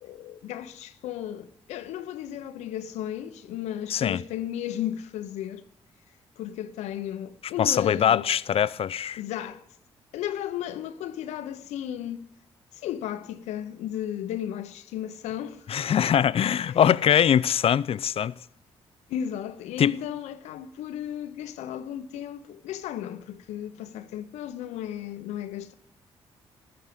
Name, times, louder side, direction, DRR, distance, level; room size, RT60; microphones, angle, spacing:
voice 1, 0.0-5.6 6.4-8.2 9.2-9.6 10.1-12.3 12.7-15.7 16.0-16.2 16.6-16.9 19.1-25.7, left 10 dB, 85° left, 0.9 m, -34 dB
voice 2, 3.9-4.2 7.6-9.2 15.7-18.3 19.8-19.9, left 9 dB, 55° left, 0.5 m, -22 dB
14.0 x 6.6 x 9.4 m
supercardioid pair, 55°, 11 cm